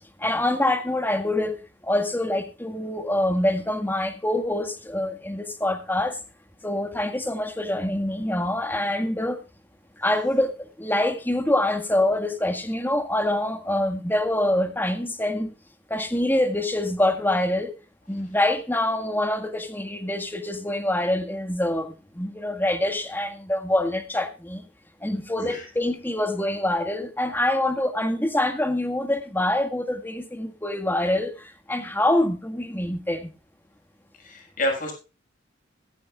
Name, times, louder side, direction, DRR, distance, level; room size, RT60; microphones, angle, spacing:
voice 1, 0.2-6.2 6.6-9.4 10.0-15.5 15.9-17.7 18.1-24.6 25.0-33.3, left 1 dB, 10° left, 1.7 m, -25 dB
voice 2, 34.2-34.9, left 1 dB, 45° left, 6.4 m, -28 dB
16.5 x 13.0 x 2.4 m
head